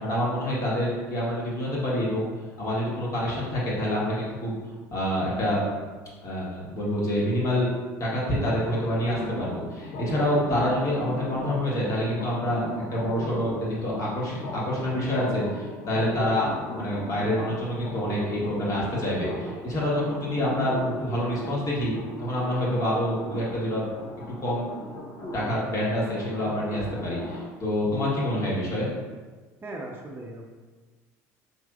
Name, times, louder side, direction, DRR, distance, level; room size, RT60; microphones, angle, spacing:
voice 1, 0.0-2.3 2.6-4.6 4.9-5.6 6.2-7.7 8.0-12.6 12.9-21.9 22.2-23.8 24.4-24.7 25.3-28.9, equal, 40° left, -6 dB, 1.5 m, -27 dB
sound 1, 8.2-27.5, left 1 dB, 60° left, 1.0 m, -38 dB
voice 2, 29.6-30.5, right 1 dB, 25° right, -1 dB, 0.7 m, -38 dB
4.4 x 3.2 x 2.4 m, 1.4 s
supercardioid pair, 85°, 8 cm